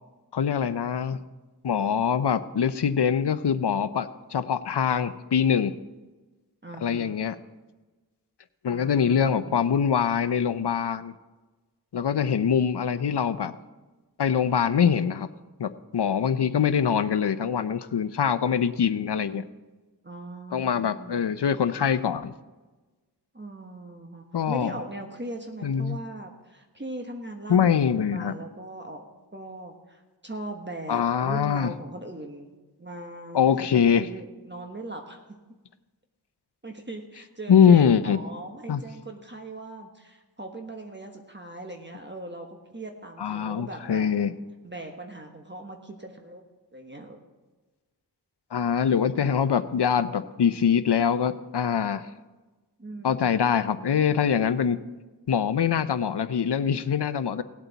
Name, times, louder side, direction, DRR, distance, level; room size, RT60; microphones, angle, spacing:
voice 1, 0.3-1.2 1.6-5.7 6.8-7.4 8.6-11.1 11.9-13.5 14.2-15.3 15.6-19.4 20.5-22.3 24.3-24.7 25.6-26.0 27.5-28.3 30.9-31.7 33.3-34.1 37.5-38.2 38.7-38.8 43.2-44.3 48.5-52.1 53.0-54.8 55.3-57.4, left 7 dB, 80° left, 13 dB, 0.6 m, -23 dB
voice 2, 6.6-7.2 8.7-9.6 20.0-21.2 23.3-29.0 29.3-32.5 32.8-33.4 34.0-35.2 36.6-44.1 44.6-46.4 46.7-47.2 52.8-53.4, right 2 dB, 25° right, 3 dB, 1.2 m, -40 dB
18.0 x 8.2 x 4.0 m, 1.2 s
wide cardioid pair, 55°, 40 cm